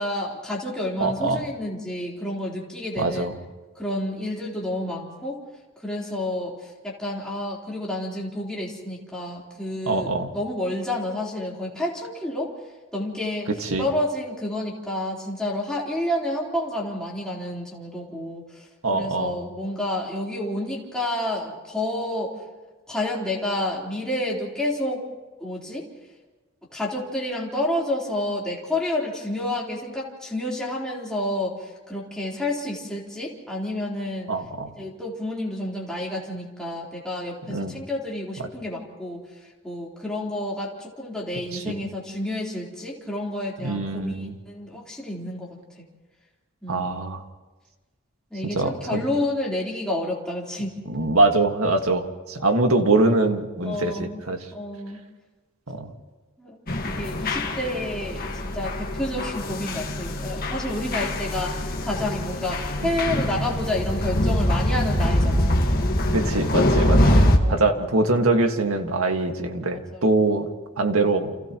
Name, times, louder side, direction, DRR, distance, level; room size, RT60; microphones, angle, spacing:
voice 1, 0.0-3.3 3.8-5.4 5.8-12.5 12.9-13.5 13.8-22.3 22.9-25.0 25.4-25.8 26.7-34.3 34.8-39.2 39.6-45.6 46.6-46.9 48.3-50.7 53.6-54.2 54.5-55.0 56.4-56.6 56.8-65.6 67.0-67.8 69.7-70.0, left 1 dB, 5° left, -5 dB, 3.8 m, -29 dB
voice 2, 1.0-1.4 3.0-3.3 9.9-10.3 13.6-13.9 18.8-19.4 34.3-34.7 37.5-37.7 38.4-38.5 41.5-41.7 43.6-44.3 46.7-47.2 48.4-49.0 50.9-54.4 55.7-55.9 62.8-62.9 66.1-70.5 70.8-71.3, right 2 dB, 85° right, 5 dB, 1.8 m, -23 dB
sound 1, 56.7-67.4, left 1 dB, 45° left, 1.7 m, -23 dB
30.0 x 28.5 x 3.1 m, 1.2 s
head